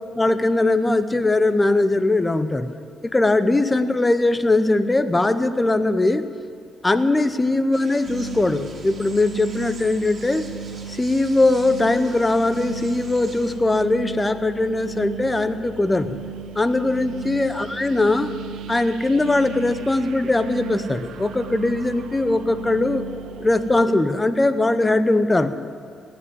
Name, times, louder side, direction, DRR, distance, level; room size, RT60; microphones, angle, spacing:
voice 1, 0.1-2.7 3.0-6.2 6.8-10.5 10.9-16.2 16.5-18.3 18.7-23.0 23.4-25.5, left 2 dB, 15° left, 11 dB, 0.8 m, -20 dB
sound 1, 7.7-13.5, right 4 dB, 45° right, 2.4 m, -44 dB
sound 2, 8.0-23.9, right 7 dB, 75° right, 0.6 m, -37 dB
18.0 x 6.2 x 9.6 m, 2.3 s
cardioid pair, 90°, 0 cm